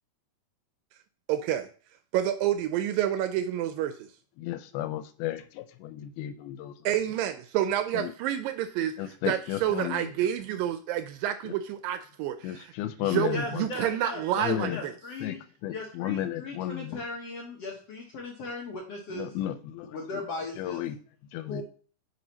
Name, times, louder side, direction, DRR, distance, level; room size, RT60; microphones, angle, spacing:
voice 1, 1.3-1.7 2.1-4.1 6.9-8.9 9.3-12.7 13.0-14.9, right 11 dB, 80° right, 9 dB, 2.1 m, -29 dB
voice 2, 4.4-6.7 7.9-8.1 9.0-10.1 11.5-11.6 12.4-13.7 14.4-14.8 15.2-15.4 15.6-17.0 19.1-20.0 20.6-21.0 21.3-21.6, left 12 dB, 90° left, 11 dB, 2.5 m, -33 dB
voice 3, 13.3-15.4 15.7-19.3 19.9-20.9 21.5-21.6, left 2 dB, 65° left, -1 dB, 1.5 m, -37 dB
9.3 x 4.9 x 2.8 m, 0.41 s
omnidirectional pair, 4.3 m